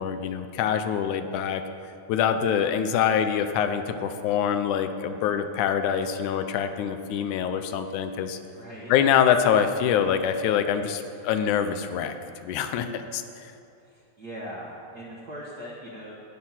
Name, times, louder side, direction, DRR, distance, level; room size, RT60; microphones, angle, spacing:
voice 1, 0.0-1.6 2.1-8.4 8.9-12.1 12.4-13.2, left 8 dB, 80° left, 9 dB, 2.1 m, -25 dB
voice 2, 8.5-8.9 12.7-13.2 13.8-16.1, equal, 50° right, -4 dB, 1.2 m, -41 dB
18.0 x 6.3 x 5.7 m, 2.6 s
omnidirectional pair, 3.5 m